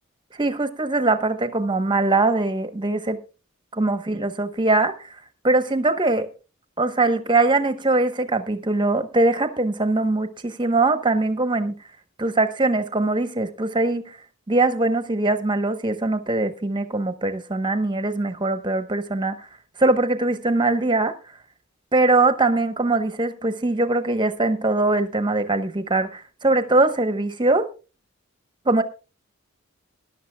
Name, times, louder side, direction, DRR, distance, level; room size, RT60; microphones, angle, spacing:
voice 1, 0.4-3.2 3.7-5.1 5.4-6.3 6.8-11.7 12.2-14.2 14.5-19.4 19.8-21.1 21.9-27.7 28.7-28.8, right 2 dB, 20° right, 0.9 m, -22 dB
20.5 x 11.0 x 2.2 m
head